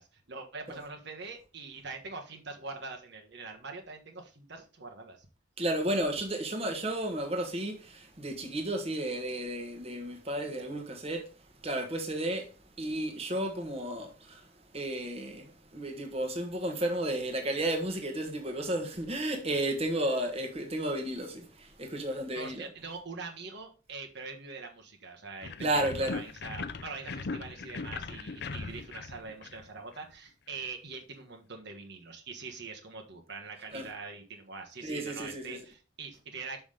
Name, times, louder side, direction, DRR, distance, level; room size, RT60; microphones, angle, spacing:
voice 1, 0.0-5.3 22.3-36.6, right 4 dB, 60° right, 1.4 m, -43 dB
voice 2, 5.6-11.3 11.6-12.5 12.8-14.4 14.7-22.7 25.6-26.2 33.7-33.9 34.8-35.6, right 1 dB, 30° right, 1.4 m, -33 dB
sound 1, 25.4-30.0, left 4 dB, 60° left, 0.6 m, -39 dB
6.1 x 5.7 x 5.0 m
head